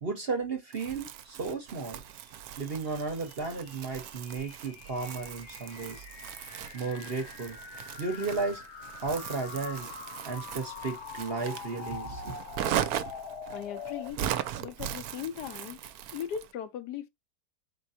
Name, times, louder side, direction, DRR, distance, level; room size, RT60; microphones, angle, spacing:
voice 1, 0.0-2.0 2.6-6.0 6.7-7.6 8.0-8.6 9.0-9.9 10.3-12.3, right 4 dB, 45° right, 0.9 m, -34 dB
Crumpling crinkling, 0.7-16.5, right 11 dB, 70° right, 1.0 m, -39 dB
sound 1, 2.2-14.1, left 6 dB, 60° left, 0.8 m, -44 dB
voice 2, 13.5-14.2 14.6-15.8 16.1-17.1, left 9 dB, 75° left, 1.2 m, -38 dB
4.5 x 4.1 x 2.6 m
omnidirectional pair, 1.8 m